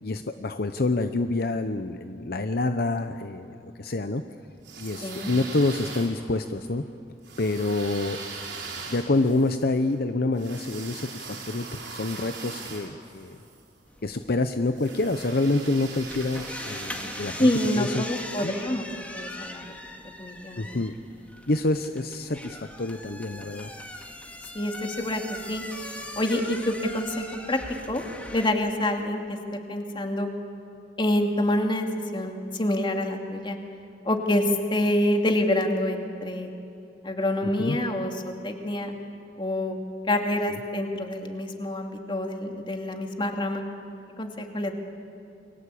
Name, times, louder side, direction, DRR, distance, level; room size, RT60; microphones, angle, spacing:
voice 1, 0.0-4.2 4.8-6.8 7.4-8.2 8.9-13.4 14.0-17.5 17.7-18.0 18.4-18.5 20.6-21.0 21.5-23.7 37.6-37.8, left 2 dB, 60° left, 8 dB, 0.8 m, -27 dB
sound 1, 4.6-6.5 7.2-13.6 14.7-17.8, right 4 dB, 85° right, 6.0 m, -40 dB
voice 2, 5.0-5.3 17.4-18.9 19.1-19.8 20.2-20.8 24.5-27.6 27.9-28.0 28.3-29.4 29.7-30.3 31.0-33.6 34.0-36.5 37.0-38.9 39.4-39.8 40.1-43.6 44.2-44.7, left 1 dB, 30° left, 3 dB, 2.5 m, -27 dB
sound 2, 13.9-28.5, left 1 dB, 10° left, 2.2 m, -40 dB
29.0 x 22.5 x 8.5 m, 2.8 s
head